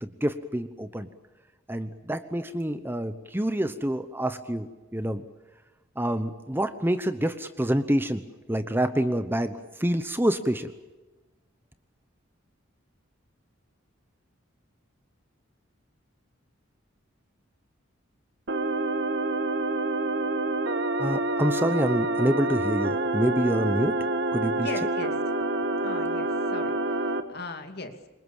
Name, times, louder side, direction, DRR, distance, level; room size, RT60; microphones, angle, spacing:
voice 1, 0.0-1.1 1.7-5.2 6.0-8.2 8.5-10.7 21.0-23.9 24.3-24.7, right 1 dB, 10° right, 11 dB, 0.9 m, -27 dB
sound 1, 18.5-27.2, right 2 dB, 60° right, 1.6 m, -27 dB
voice 2, 24.5-25.2 25.8-28.1, left 3 dB, 55° left, 6 dB, 2.6 m, -39 dB
27.0 x 23.5 x 7.3 m, 1.2 s
head